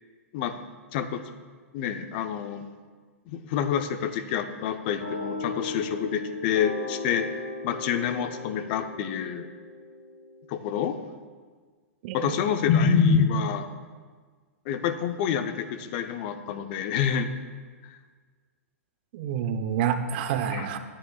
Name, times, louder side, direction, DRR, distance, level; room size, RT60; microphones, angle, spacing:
voice 1, 0.9-1.2 1.7-2.7 3.3-9.5 10.5-11.0 12.1-13.7 14.7-17.3 17.9-18.0 20.5-20.7, left 7 dB, 45° left, 8 dB, 0.7 m, -27 dB
sound 1, 5.0-10.5, left 3 dB, 75° left, 2.0 m, -36 dB
voice 2, 12.0-12.4 19.1-20.8, right 8 dB, 45° right, 9 dB, 0.7 m, -28 dB
12.5 x 8.9 x 2.4 m, 1.5 s
figure-of-eight pair, 110°, 8 cm